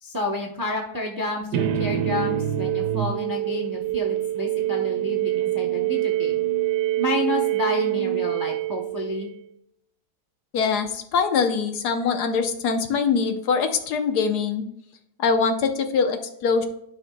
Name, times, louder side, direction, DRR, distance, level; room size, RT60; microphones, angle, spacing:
voice 1, 0.0-6.4 7.0-9.3, left 1 dB, 25° right, 1 dB, 0.5 m, -30 dB
sound 1, 1.5-9.4, right 12 dB, 80° right, 1.2 m, -25 dB
voice 2, 10.5-14.6 15.2-16.6, left 5 dB, 75° left, 7 dB, 1.3 m, -23 dB
12.0 x 5.3 x 2.2 m, 0.75 s
omnidirectional pair, 1.8 m